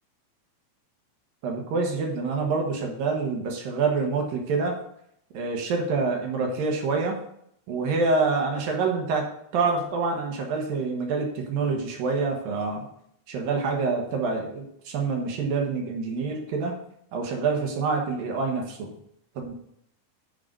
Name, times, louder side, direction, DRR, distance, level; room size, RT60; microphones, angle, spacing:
voice 1, 1.4-4.8 5.3-7.2 7.7-9.2 9.5-12.8 13.3-16.8 17.1-18.9 19.4-19.5, right 4 dB, 75° right, 1 dB, 3.0 m, -26 dB
9.9 x 3.9 x 6.7 m, 0.72 s
omnidirectional pair, 4.2 m